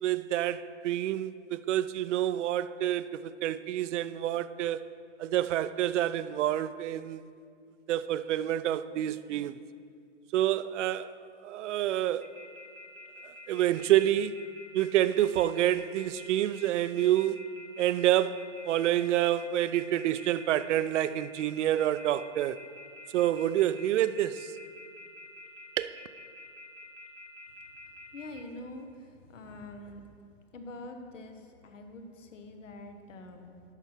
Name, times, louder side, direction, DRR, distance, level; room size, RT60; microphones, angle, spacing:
voice 1, 0.0-4.8 5.2-7.3 7.9-9.6 10.3-11.1 11.4-12.3 13.2-14.4 14.7-17.4 17.8-22.6 23.1-24.5 25.8-26.0, right 12 dB, 70° right, 0.5 m, -28 dB
sound 1, 12.2-28.4, left 1 dB, 5° left, 0.8 m, -48 dB
voice 2, 28.1-30.1 30.5-33.6, left 2 dB, 90° left, 1.3 m, -45 dB
11.5 x 4.5 x 6.1 m
hypercardioid pair, 145°, 37 cm